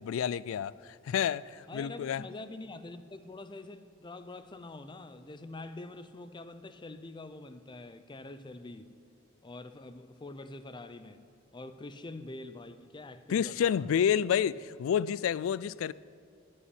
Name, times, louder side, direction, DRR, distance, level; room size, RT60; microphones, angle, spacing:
voice 1, 0.0-2.2 13.3-15.9, left 8 dB, 85° left, 0.3 m, -29 dB
voice 2, 1.7-8.9 9.4-11.2 11.5-14.0, left 2 dB, 25° left, 0.5 m, -45 dB
9.7 x 8.7 x 9.9 m
head